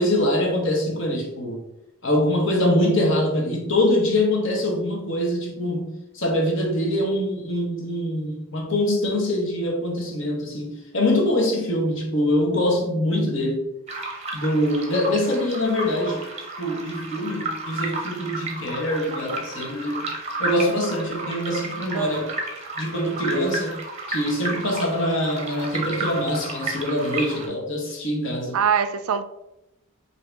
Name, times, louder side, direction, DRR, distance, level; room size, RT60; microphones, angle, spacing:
voice 1, 0.0-1.6 2.0-13.6 14.3-16.3 16.6-20.1 20.4-22.3 22.8-23.8 24.1-28.6, left 1 dB, 55° left, 1.0 m, -24 dB
sound 1, 13.9-27.5, right 2 dB, 30° right, 0.6 m, -32 dB
voice 2, 21.9-22.4 28.5-29.2, right 7 dB, 75° right, 0.3 m, -23 dB
4.6 x 2.7 x 3.4 m
head